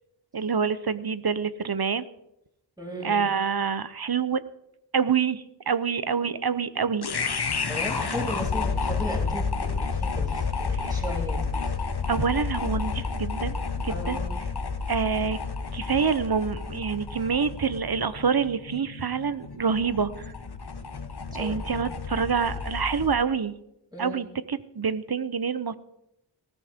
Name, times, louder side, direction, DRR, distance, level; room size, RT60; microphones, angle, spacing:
voice 1, 0.3-2.1 3.0-4.4 4.9-7.1 10.7-11.0 12.1-14.2 14.9-15.4 15.7-20.2 21.3-23.5 24.0-25.8, right 6 dB, 55° right, 14 dB, 0.9 m, -27 dB
voice 2, 2.8-3.2 7.7-11.7 13.9-14.3 21.3-21.9 23.9-24.3, equal, 10° right, -2 dB, 6.2 m, -36 dB
sound 1, 7.0-23.2, left 4 dB, 60° left, 1.2 m, -31 dB
19.5 x 14.0 x 3.7 m, 0.81 s
wide cardioid pair, 60°, 45 cm